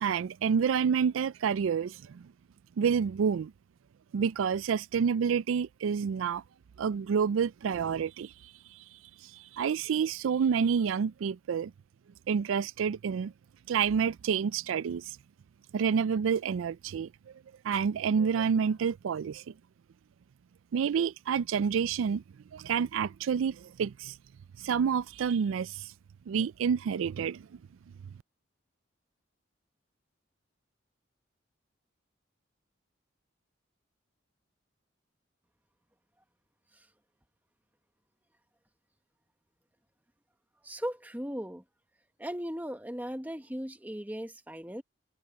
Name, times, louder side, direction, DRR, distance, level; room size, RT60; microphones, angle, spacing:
voice 1, 0.0-2.3 2.8-3.5 4.1-6.4 6.8-8.3 9.5-11.7 12.3-13.3 13.7-15.2 15.7-17.1 17.6-19.4 20.7-22.2 22.5-24.2 24.6-25.9 26.3-27.5, right 6 dB, 85° right, 0.4 m, -28 dB
voice 2, 40.6-41.6 42.2-44.8, equal, 10° right, 1.1 m, -37 dB
head